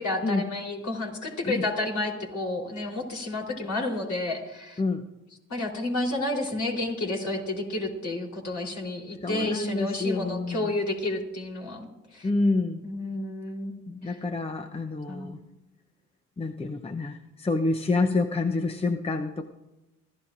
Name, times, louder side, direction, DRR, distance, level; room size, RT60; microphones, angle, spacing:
voice 1, 0.0-4.8 5.5-12.3 12.8-13.8 14.0-14.2 15.1-15.3, left 2 dB, 50° left, 0 dB, 3.8 m, -31 dB
voice 2, 9.2-10.7 12.2-12.8 13.9-15.4 16.4-19.5, left 3 dB, 15° left, 7 dB, 0.8 m, -28 dB
26.0 x 14.0 x 2.6 m, 1.0 s
hypercardioid pair, 55°, 37 cm